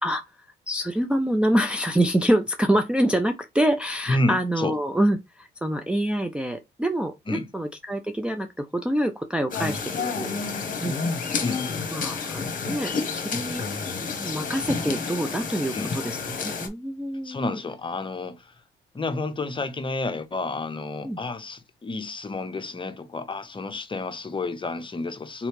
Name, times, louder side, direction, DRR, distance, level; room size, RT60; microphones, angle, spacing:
voice 1, 0.0-10.3 10.8-11.0 11.9-13.6 14.0-17.6 21.0-21.2, right 1 dB, 5° right, 0.4 m, -26 dB
voice 2, 4.1-4.7 7.3-7.5 11.4-11.7 15.7-15.9 17.2-18.5 18.9-25.5, left 2 dB, 25° left, 0.8 m, -30 dB
sound 1, 9.5-16.7, left 5 dB, 45° left, 1.1 m, -30 dB
3.7 x 3.1 x 3.0 m
cardioid pair, 90°, 20 cm